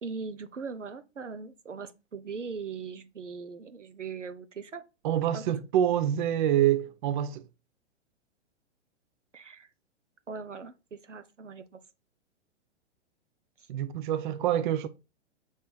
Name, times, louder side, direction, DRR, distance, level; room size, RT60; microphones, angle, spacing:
voice 1, 0.0-4.8 5.3-5.4 9.3-9.7 10.3-11.8 13.6-13.7, right 5 dB, 90° right, 0.7 m, -40 dB
voice 2, 5.0-7.5 13.7-14.9, right 11 dB, 45° right, 0.5 m, -26 dB
6.3 x 3.7 x 2.2 m
figure-of-eight pair, 115°, 35 cm